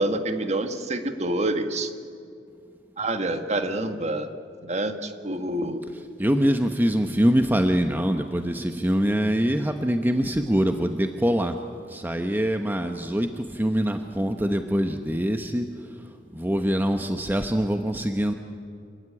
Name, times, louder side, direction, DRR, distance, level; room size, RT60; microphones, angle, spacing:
voice 1, 0.0-1.9 3.0-4.3 4.7-5.8, right 1 dB, 40° right, 7 dB, 1.7 m, -27 dB
voice 2, 5.9-11.5 11.9-15.7 16.3-18.3, equal, 10° right, 6 dB, 0.9 m, -24 dB
27.0 x 16.5 x 9.9 m, 2.4 s
head